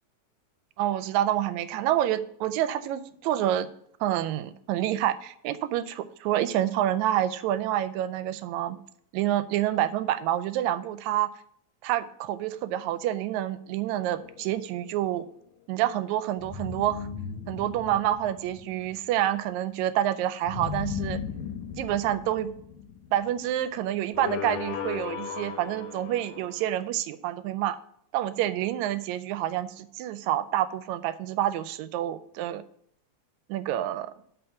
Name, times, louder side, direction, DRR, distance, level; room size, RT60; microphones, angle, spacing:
voice 1, 0.8-3.7 4.0-8.8 9.1-11.3 11.8-15.3 15.7-17.1 17.5-21.2 21.8-22.5 23.1-27.8 28.1-32.6 33.5-34.1, right 12 dB, 80° right, 14 dB, 1.9 m, -28 dB
sound 1, 14.1-15.1 16.4-19.0 20.5-23.6 24.1-26.7, left 7 dB, 85° left, 2.2 m, -37 dB
7.9 x 4.2 x 6.8 m, 0.66 s
omnidirectional pair, 3.4 m